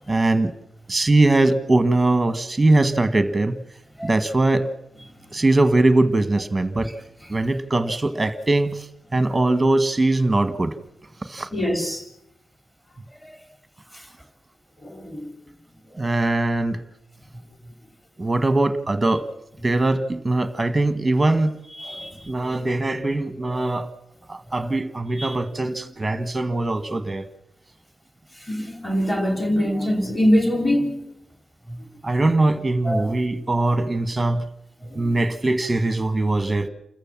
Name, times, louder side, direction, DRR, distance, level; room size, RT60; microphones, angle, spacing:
voice 1, 0.1-0.5 0.9-3.6 4.0-4.7 5.3-6.9 7.3-8.9 9.1-10.7 11.2-11.5 16.0-16.8 18.2-19.2 19.6-21.6 22.3-23.9 24.3-27.3 32.0-34.4 34.9-36.7, right 2 dB, 15° right, 1.3 m, -21 dB
voice 2, 11.5-12.0 13.2-13.3 14.8-15.3 21.8-22.6 23.5-23.6 25.2-25.3 28.5-31.0 32.8-33.2 34.8-35.1, equal, 10° left, 3.4 m, -24 dB
28.0 x 14.5 x 7.3 m
wide cardioid pair, 145°, 0 cm